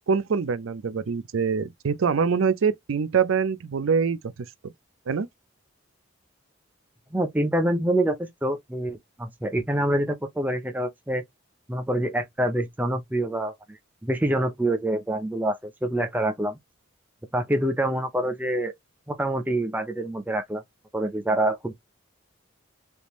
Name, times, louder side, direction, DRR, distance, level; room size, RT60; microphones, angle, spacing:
voice 1, 0.1-4.2 4.6-4.7 5.1-5.3, right 6 dB, 70° right, 0.5 m, -24 dB
voice 2, 7.1-11.2 11.7-16.6 17.3-18.7 19.1-20.6 20.9-21.7, right 1 dB, 10° right, 0.4 m, -26 dB
3.5 x 2.5 x 3.0 m
head